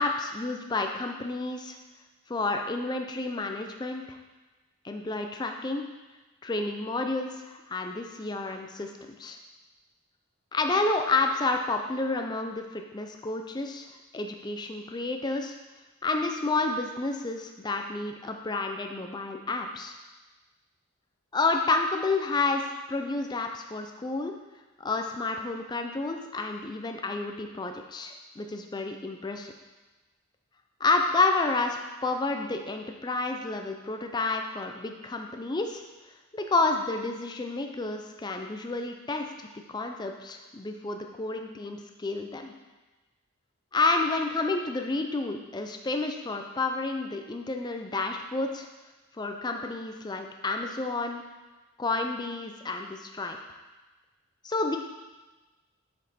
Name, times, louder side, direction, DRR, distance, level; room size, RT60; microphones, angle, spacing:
voice 1, 0.0-1.8 2.3-4.2 4.8-5.9 6.4-8.9 9.2-9.4 10.5-13.9 14.1-15.5 16.0-19.9 21.3-22.6 22.9-24.3 24.8-29.5 30.8-35.8 36.3-42.5 43.7-48.7 49.2-51.2 51.8-53.6 54.4-54.8, left 3 dB, 20° left, 4 dB, 0.4 m, -30 dB
6.7 x 5.3 x 4.2 m, 1.2 s
head